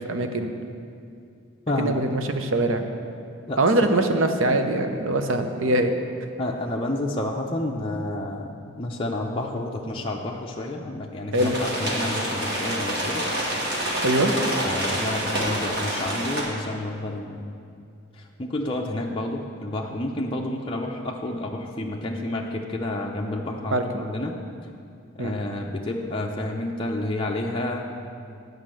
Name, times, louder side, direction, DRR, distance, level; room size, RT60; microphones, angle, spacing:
voice 1, 0.1-0.5 1.8-2.9 3.6-6.0 11.3-11.6 14.0-14.3 23.7-23.8 25.2-25.3, right 1 dB, 65° right, 6 dB, 0.7 m, -22 dB
voice 2, 1.7-2.0 3.5-3.9 6.4-8.5 8.8-13.2 14.7-17.4 18.4-24.3 25.2-27.9, left 1 dB, 25° left, -1 dB, 0.5 m, -30 dB
sound 1, 11.3-16.4, right 1 dB, 50° right, 2.1 m, -27 dB
10.0 x 5.2 x 7.5 m, 2.4 s
head